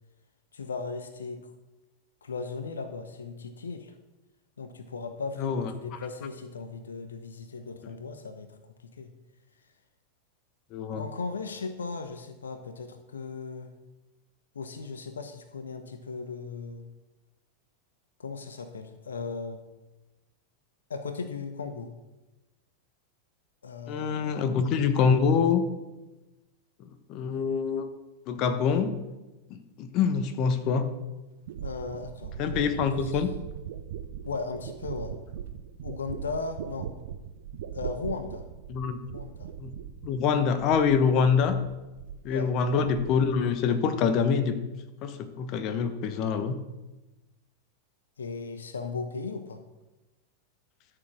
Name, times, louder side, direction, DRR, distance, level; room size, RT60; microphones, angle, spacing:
voice 1, 0.5-1.5 2.2-3.9 4.6-8.5 9.0-9.1 11.0-13.7 14.5-16.8 18.2-19.6 20.9-21.9 23.6-24.4 31.6-33.2 34.2-35.1 35.8-36.9 37.7-38.4 39.0-39.5 42.3-42.5 48.2-49.6, left 4 dB, 70° left, 9 dB, 1.0 m, -37 dB
voice 2, 5.4-5.7 10.7-11.1 23.9-25.6 27.1-27.9 28.3-29.0 29.5-30.9 32.4-33.3 38.7-39.0 39.6-39.7 40.0-41.6 42.2-44.6 45.0-46.5, left 6 dB, 40° left, 9 dB, 1.1 m, -25 dB
sound 1, 30.7-30.8 31.5-41.2 41.4-42.3 42.6-43.4 43.7-44.2, right 9 dB, 55° right, 0.8 m, -40 dB
13.0 x 6.9 x 6.2 m, 1.1 s
figure-of-eight pair, 90°, 0 cm